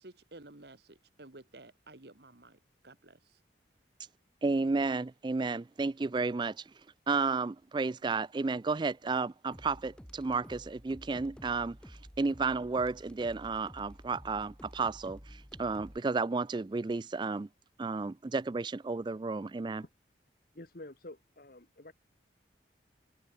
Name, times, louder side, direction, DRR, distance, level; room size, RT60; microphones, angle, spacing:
voice 1, 0.0-3.4, right 2 dB, 60° right, 1.7 m, -53 dB
voice 2, 4.4-6.6 7.1-11.8 12.2-17.5 17.8-19.8, right 4 dB, 25° right, 0.3 m, -32 dB
sound 1, 9.5-16.0, equal, 5° left, 1.7 m, -51 dB
voice 3, 20.5-21.9, left 1 dB, 50° left, 1.7 m, -49 dB
open air
head